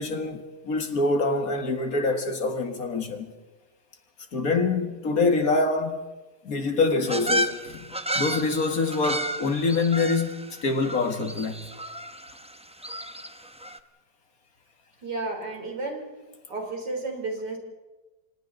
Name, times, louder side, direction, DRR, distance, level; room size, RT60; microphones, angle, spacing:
voice 1, 0.0-3.3 4.3-6.1 6.4-11.7, left 3 dB, 55° left, 2.2 m, -25 dB
sound 1, 7.0-13.8, right 1 dB, 10° right, 0.3 m, -32 dB
voice 2, 15.0-16.1 16.5-17.6, right 3 dB, 75° right, 4.3 m, -32 dB
29.5 x 25.5 x 4.0 m
omnidirectional pair, 1.8 m